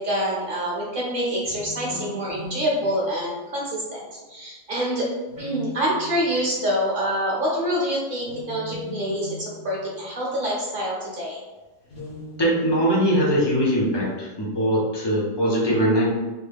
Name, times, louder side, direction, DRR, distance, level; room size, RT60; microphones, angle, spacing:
voice 1, 0.0-4.0 4.3-5.1 5.4-11.4, equal, 45° right, -4 dB, 0.9 m, -26 dB
sound 1, 1.4-3.7 5.3-6.5 8.2-10.5 11.8-12.9, left 2 dB, 75° left, 1.4 m, -39 dB
voice 2, 12.4-16.1, equal, 30° left, -6 dB, 0.5 m, -21 dB
3.0 x 2.2 x 3.4 m, 1.2 s
omnidirectional pair, 1.4 m